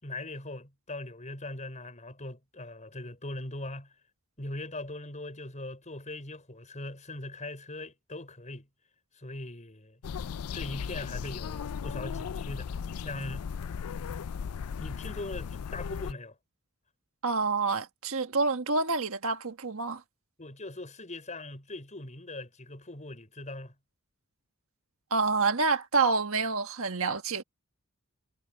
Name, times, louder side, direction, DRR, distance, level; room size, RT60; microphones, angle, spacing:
voice 1, 0.0-3.9 4.4-8.7 9.1-10.0 10.5-12.7 13.0-13.4 14.8-16.4 20.4-23.7, left 2 dB, 35° left, 5.8 m, -40 dB
sound 1, 10.0-16.1, left 6 dB, 90° left, 0.4 m, -36 dB
voice 2, 17.2-20.0 25.1-27.4, right 4 dB, 65° right, 1.5 m, -27 dB
head